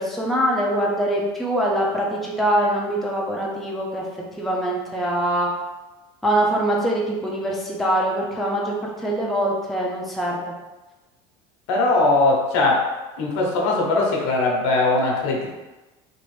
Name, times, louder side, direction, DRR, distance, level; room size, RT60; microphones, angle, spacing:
voice 1, 0.0-4.0 4.4-5.5 6.2-10.4, right 1 dB, ahead, -4 dB, 0.5 m, -23 dB
voice 2, 11.7-12.9 13.2-15.5, left 2 dB, 90° left, -1 dB, 0.8 m, -20 dB
3.0 x 2.5 x 3.1 m, 1.1 s
cardioid pair, 140°, 14 cm